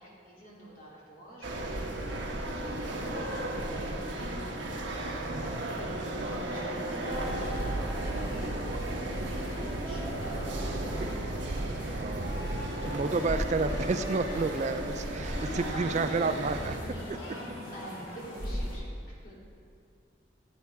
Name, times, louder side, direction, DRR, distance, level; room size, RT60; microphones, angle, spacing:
voice 1, 0.0-4.5 5.1-11.1 15.4-16.1 16.8-16.9 17.3-17.4 17.7-19.3, equal, 45° left, -6 dB, 3.1 m, -47 dB
sound 1, 1.4-16.8, right 1 dB, 70° right, 1.3 m, -36 dB
voice 2, 5.3-5.6 11.8-12.5 12.8-16.7, right 3 dB, 35° right, 10 dB, 0.4 m, -31 dB
sound 2, 7.0-18.8, equal, 80° left, 2.8 m, -38 dB
sound 3, 7.2-12.9, right 2 dB, 55° right, 0.8 m, -36 dB
16.0 x 8.5 x 3.5 m, 2.5 s
head